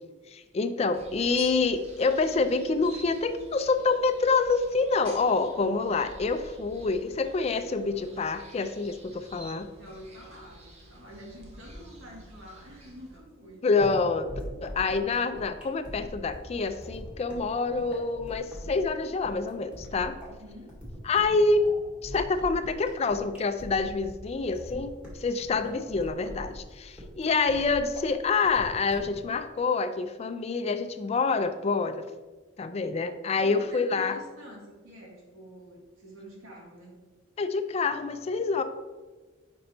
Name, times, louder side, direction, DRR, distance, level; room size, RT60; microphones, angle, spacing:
voice 1, 0.3-9.7 13.6-14.3 14.6-20.2 21.0-21.7 22.0-32.1 32.6-34.2 37.4-38.6, left 4 dB, 30° left, 9 dB, 0.3 m, -27 dB
sound 1, 0.9-13.2, right 1 dB, 30° right, 1.1 m, -49 dB
voice 2, 9.8-13.7 20.3-20.8 33.4-37.0, equal, 85° right, -2 dB, 2.1 m, -47 dB
sound 2, 13.8-29.2, equal, 5° right, 1.9 m, -42 dB
5.3 x 5.2 x 4.3 m, 1.3 s
head